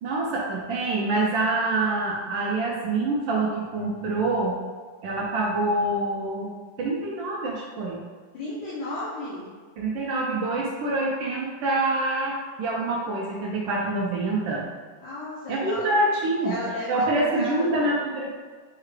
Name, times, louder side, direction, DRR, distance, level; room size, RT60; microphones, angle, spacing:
voice 1, 0.0-4.6 5.0-6.5 6.8-8.0 9.8-14.7 15.5-16.5 16.9-18.3, right 2 dB, 80° right, -3 dB, 1.4 m, -26 dB
voice 2, 8.3-9.5 15.0-15.9 16.4-17.8, left 2 dB, 70° left, -8 dB, 1.5 m, -34 dB
6.5 x 2.4 x 3.2 m, 1.5 s
omnidirectional pair, 2.1 m